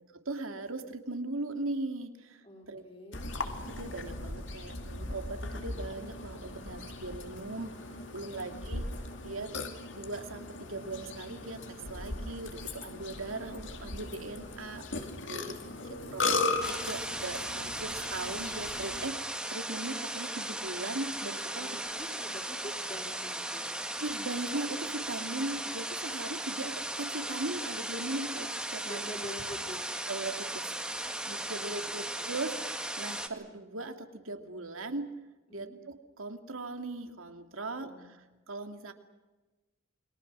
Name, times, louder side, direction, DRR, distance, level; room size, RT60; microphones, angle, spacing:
voice 1, 0.3-2.8 3.8-8.9 9.2-9.5 9.9-15.4 16.1-21.7 24.0-29.0 30.1-35.1 35.5-37.9 38.5-38.9, right 2 dB, 85° right, 6 dB, 2.6 m, -39 dB
voice 2, 2.4-3.3 8.4-8.9 15.4-16.1 21.6-23.8 28.8-29.9 31.6-32.5 35.5-35.8 37.8-38.1, equal, 30° left, 0 dB, 4.1 m, -47 dB
Burping eructation, 3.1-19.1, left 3 dB, 60° left, 2.6 m, -38 dB
sound 1, 16.6-33.3, right 1 dB, 5° right, 1.9 m, -37 dB
29.0 x 23.0 x 6.3 m, 1.2 s
head